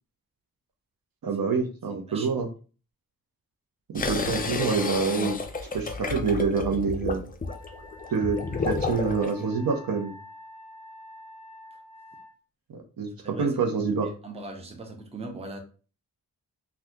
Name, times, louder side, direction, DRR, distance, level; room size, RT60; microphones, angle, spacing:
voice 1, 1.2-2.5 3.9-5.5 5.7-7.2 8.1-8.4 8.6-10.1 13.0-14.1, right 5 dB, 65° right, 4 dB, 0.7 m, -26 dB
voice 2, 1.9-2.4 13.2-13.6 14.0-15.6, right 2 dB, 15° right, 3 dB, 0.6 m, -40 dB
sound 1, 4.0-9.3, left 4 dB, 25° left, 0.4 m, -31 dB
Wind instrument woodwind instrument, 7.4-12.3, left 1 dB, 45° right, 1.6 m, -47 dB
2.7 x 2.4 x 3.5 m, 0.37 s
wide cardioid pair, 110°, 38 cm